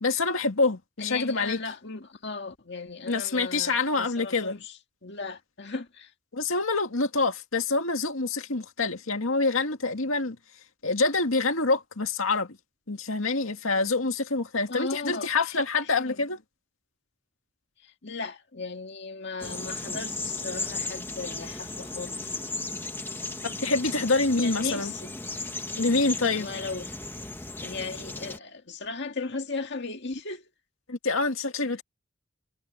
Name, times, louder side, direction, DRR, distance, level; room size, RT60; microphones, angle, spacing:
voice 1, 0.0-1.6 3.1-4.6 6.3-10.4 10.8-12.6 12.9-16.4 23.4-24.9 25.8-26.5 30.9-31.8, left 3 dB, 85° left, 2.1 m, -26 dB
voice 2, 1.0-6.1 14.7-15.6 16.0-16.1 17.8-22.3 24.4-25.2 26.4-26.9 27.6-30.4, left 4 dB, 60° left, 2.0 m, -36 dB
sound 1, 19.4-28.4, left 2 dB, 10° left, 1.2 m, -35 dB
head